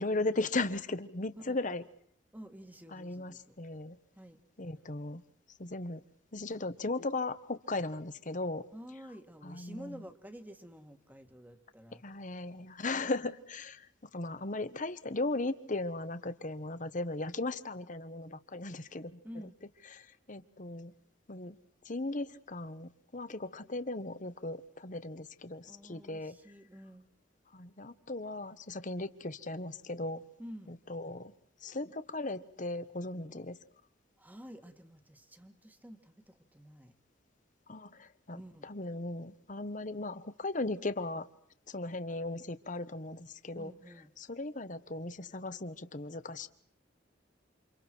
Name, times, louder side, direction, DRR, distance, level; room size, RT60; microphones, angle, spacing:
voice 1, 0.0-1.8 2.9-4.0 4.6-5.2 5.6-6.0 6.3-8.6 9.4-10.0 12.0-19.5 19.9-20.9 21.3-21.6 21.8-26.3 27.5-30.2 30.7-31.3 31.6-33.6 37.7-41.3 41.7-43.7 44.2-46.5, left 2 dB, 45° left, 12 dB, 1.3 m, -37 dB
voice 2, 2.3-3.6 4.2-4.4 8.7-12.0 19.2-19.5 25.7-27.1 30.4-30.7 34.2-36.9 38.3-38.7 43.5-44.1, equal, 10° right, 7 dB, 2.0 m, -50 dB
29.0 x 27.5 x 4.6 m, 0.63 s
head